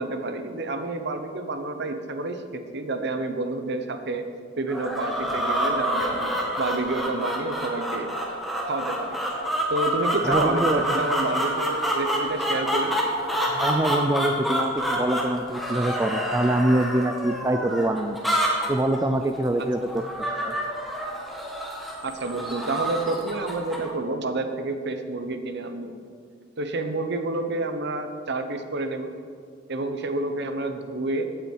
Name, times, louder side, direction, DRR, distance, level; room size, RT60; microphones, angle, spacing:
voice 1, 0.0-4.3 4.6-8.1 8.7-9.2 9.7-13.0 22.0-25.9 26.6-29.1 29.7-31.2, right 2 dB, 60° right, 7 dB, 1.1 m, -29 dB
sound 1, 4.7-23.9, equal, ahead, 1.9 m, -28 dB
voice 2, 10.2-10.8 13.5-18.2 18.7-20.0 20.4-20.5, right 1 dB, 15° right, 7 dB, 0.4 m, -24 dB
16.0 x 9.1 x 4.7 m, 2.2 s
head